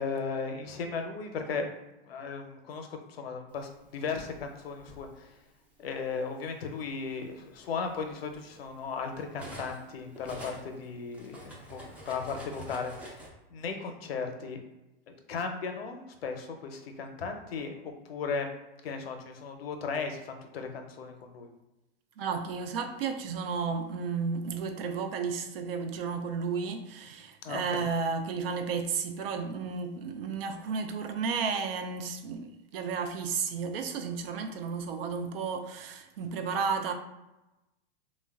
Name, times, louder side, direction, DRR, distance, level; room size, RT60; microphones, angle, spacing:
voice 1, 0.0-1.7 2.0-5.4 5.8-13.2 13.5-14.6 15.3-18.5 18.8-21.5 27.4-27.8, left 5 dB, 80° left, 0.6 m, -36 dB
Cutlery silverware, 3.8-5.0 6.0-6.2 6.6-9.9 10.1-13.3, equal, 5° right, 0.3 m, -47 dB
voice 2, 22.2-36.9, right 5 dB, 75° right, 0.5 m, -33 dB
2.9 x 2.1 x 2.3 m
hypercardioid pair, 115°, 30 cm